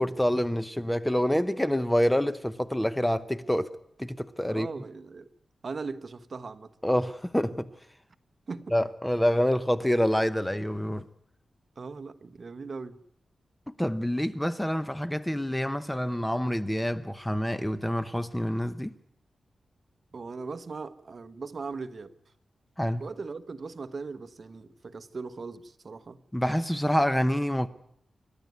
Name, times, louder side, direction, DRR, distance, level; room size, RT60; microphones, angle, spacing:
voice 1, 0.0-3.7 4.0-4.7 6.8-7.7 8.7-11.0 13.8-18.9 22.8-23.0 26.3-27.7, equal, 5° left, 0.8 m, -27 dB
voice 2, 4.5-5.3 5.6-6.7 8.5-8.7 11.8-13.0 20.1-22.1 23.0-26.2, right 4 dB, 45° right, 1.2 m, -39 dB
28.0 x 12.0 x 9.5 m
wide cardioid pair, 115°, 0 cm